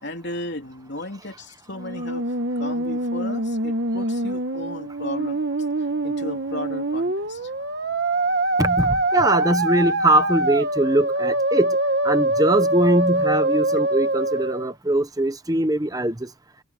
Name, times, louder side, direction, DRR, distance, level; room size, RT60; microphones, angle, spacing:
voice 1, 0.0-2.3 2.6-5.4 6.0-7.5, left 1 dB, 55° left, 3.5 m, -34 dB
Musical instrument, 1.7-14.7, right 2 dB, 50° right, 1.5 m, -24 dB
voice 2, 8.6-11.8 12.0-16.3, right 1 dB, 15° right, 1.0 m, -21 dB
head